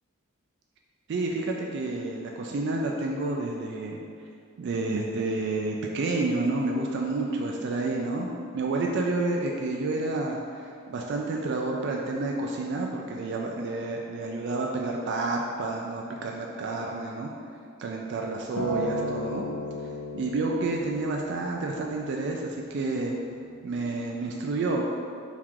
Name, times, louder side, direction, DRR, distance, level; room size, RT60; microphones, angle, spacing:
voice 1, 1.1-4.0 4.6-8.3 8.5-17.3 17.8-19.4 20.1-23.2 23.6-24.8, right 2 dB, 55° right, 0 dB, 0.3 m, -29 dB
Acoustic guitar, 18.6-22.8 23.7-23.8, equal, 75° left, 0.6 m, -36 dB
3.6 x 2.4 x 4.5 m, 2.3 s
head